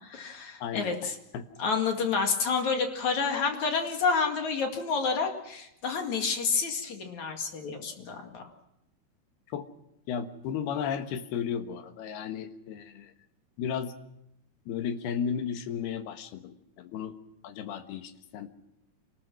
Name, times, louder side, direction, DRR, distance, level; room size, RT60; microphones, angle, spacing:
voice 1, 0.0-1.2 1.6-8.4, left 5 dB, 50° left, 4 dB, 3.2 m, -29 dB
voice 2, 0.6-1.0 1.3-1.5 9.5-9.7 10.1-13.1 13.6-13.9 14.7-17.1 17.4-18.5, left 7 dB, 80° left, 8 dB, 3.4 m, -34 dB
27.5 x 19.5 x 6.1 m, 0.82 s
omnidirectional pair, 4.5 m